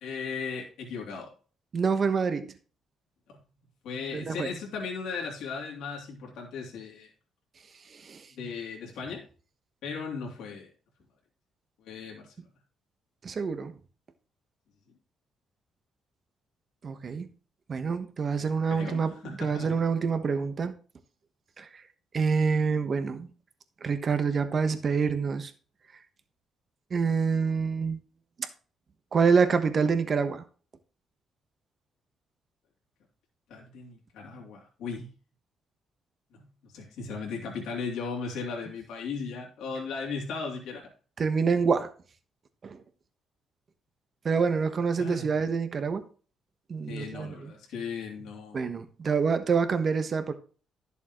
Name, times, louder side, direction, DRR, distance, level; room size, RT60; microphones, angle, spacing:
voice 1, 0.0-1.3 3.8-7.1 8.3-9.2 9.8-10.7 11.8-12.3 18.4-19.8 33.5-35.1 36.3-36.5 36.7-40.9 45.0-45.3 46.8-48.6, left 5 dB, 85° left, 3.0 m, -37 dB
voice 2, 1.7-2.5 4.1-4.5 8.0-8.2 13.2-13.7 16.8-17.3 17.7-20.7 21.6-21.7 22.1-23.3 23.8-25.5 26.9-28.0 29.1-30.4 41.2-41.9 42.6-42.8 44.2-46.0 46.7-47.5 48.5-50.3, right 5 dB, 45° right, 1.2 m, -26 dB
11.0 x 7.1 x 3.1 m
cardioid pair, 90°, 0 cm